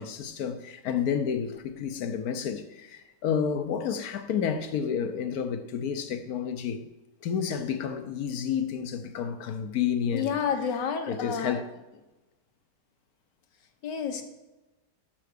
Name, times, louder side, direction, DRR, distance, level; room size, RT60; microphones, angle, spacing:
voice 1, 0.0-6.9 7.2-10.4 11.1-11.7, left 7 dB, 65° left, 1.2 m, -30 dB
voice 2, 10.1-11.6 13.8-14.2, left 7 dB, 85° left, 1.7 m, -30 dB
6.7 x 5.9 x 6.4 m
omnidirectional pair, 1.8 m